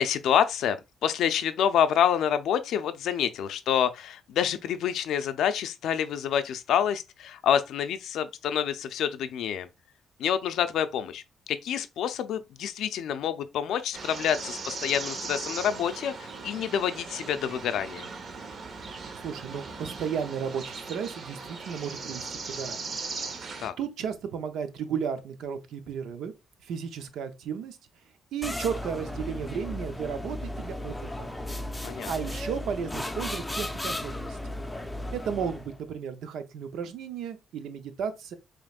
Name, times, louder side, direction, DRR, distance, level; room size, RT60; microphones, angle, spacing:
voice 1, 0.0-9.7 10.2-11.2 11.5-18.1 23.6-23.7 31.8-32.1, left 9 dB, 80° left, 0.4 m, -27 dB
sound 1, 13.9-23.7, right 4 dB, 50° right, 0.8 m, -38 dB
voice 2, 19.1-23.0 23.8-26.3 26.6-27.8 28.3-31.3 32.1-34.4 35.1-38.3, right 7 dB, 80° right, 0.7 m, -34 dB
sound 2, 28.4-35.8, left 1 dB, 10° left, 0.5 m, -35 dB
5.1 x 3.0 x 2.3 m
cardioid pair, 90°, 0 cm